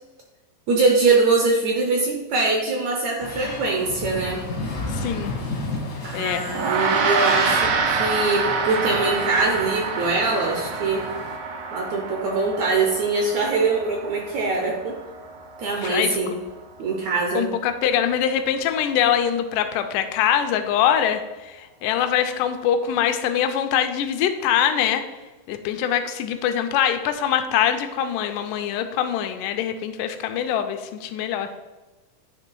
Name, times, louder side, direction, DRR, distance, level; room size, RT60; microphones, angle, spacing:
voice 1, 0.7-4.4 6.0-11.0 11.7-15.0 15.6-16.3 16.8-17.5, right 3 dB, 70° right, 1 dB, 1.8 m, -23 dB
sound 1, 3.2-11.4, left 2 dB, 55° left, 0.9 m, -33 dB
voice 2, 4.9-5.3 6.1-6.4 15.9-16.2 17.4-25.0 25.5-31.5, left 9 dB, 80° left, 8 dB, 2.0 m, -23 dB
Gong, 6.5-16.1, right 4 dB, 90° right, 2.6 m, -27 dB
9.8 x 3.3 x 4.5 m, 1.2 s
omnidirectional pair, 4.0 m